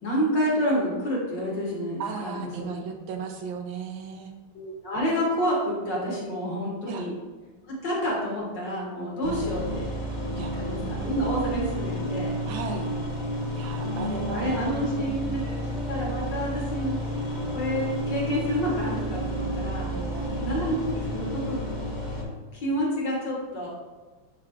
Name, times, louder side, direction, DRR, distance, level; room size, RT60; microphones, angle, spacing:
voice 1, 0.0-2.7 4.5-7.1 7.7-9.9 10.6-12.3 13.8-15.6 15.9-17.0 17.5-19.9 20.4-21.6 22.5-23.7, equal, 65° left, -4 dB, 2.4 m, -29 dB
voice 2, 2.0-4.3 6.9-7.1 9.2-9.5 10.3-10.6 12.5-12.9 13.6-15.5 19.9-20.8, right 6 dB, 80° right, 4 dB, 1.5 m, -36 dB
sound 1, 9.2-22.2, equal, 30° left, 1.0 m, -31 dB
10.5 x 4.7 x 2.4 m, 1.2 s
omnidirectional pair, 2.1 m